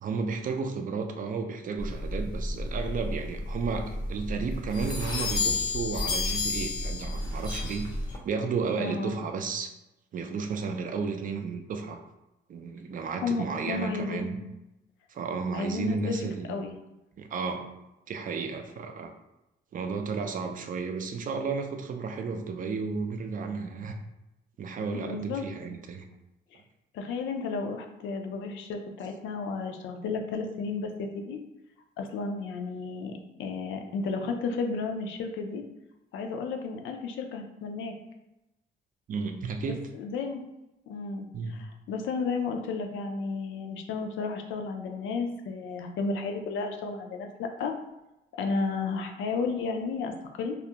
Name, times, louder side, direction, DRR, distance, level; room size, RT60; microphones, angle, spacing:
voice 1, 0.0-7.9 8.2-9.7 10.1-12.0 12.5-14.4 15.1-16.6 17.2-17.7 18.1-19.1 19.7-24.0 24.6-26.0 39.1-39.8 41.3-41.6, right 4 dB, 45° right, 5 dB, 0.4 m, -33 dB
sound 1, 1.8-8.2, left 2 dB, 20° left, 0.5 m, -31 dB
voice 2, 8.8-9.2 13.2-14.3 15.5-16.2 16.5-16.7 24.9-25.5 26.9-31.4 32.0-35.6 36.1-37.9 39.6-40.4 40.9-47.7 48.3-50.1 50.4-50.6, left 4 dB, 75° left, 4 dB, 0.4 m, -33 dB
2.4 x 2.1 x 2.7 m, 0.93 s
cardioid pair, 90°, 20 cm